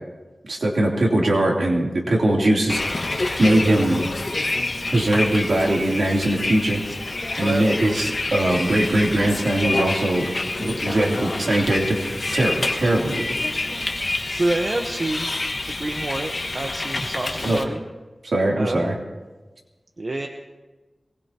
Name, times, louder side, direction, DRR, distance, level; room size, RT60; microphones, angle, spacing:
voice 1, 0.5-2.8 3.4-4.0 4.9-6.8 7.4-10.3 10.6-13.4 13.8-13.9 17.0-17.1 17.4-17.6 18.3-18.9, right 1 dB, 75° right, -2 dB, 3.2 m, -21 dB
Bus, 2.7-17.6, left 2 dB, 50° left, 1.6 m, -28 dB
voice 2, 7.4-7.7 14.4-15.3 15.8-17.8 18.6-18.8 20.0-20.3, right 2 dB, 50° right, 3 dB, 1.1 m, -27 dB
22.5 x 20.0 x 2.9 m, 1.2 s
wide cardioid pair, 70°, 0 cm